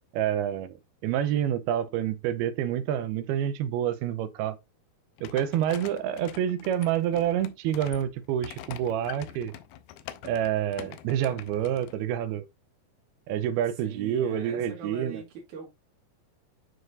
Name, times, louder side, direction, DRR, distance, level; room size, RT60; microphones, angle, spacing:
voice 1, 0.1-0.8 1.0-4.6 5.2-9.5 10.2-12.4 13.3-15.2, right 10 dB, 85° right, 2.6 m, -28 dB
sound 1, 5.2-11.9, left 12 dB, 80° left, 2.3 m, -45 dB
voice 2, 13.8-15.7, right 5 dB, 55° right, 3.2 m, -42 dB
9.3 x 4.8 x 2.5 m
omnidirectional pair, 4.5 m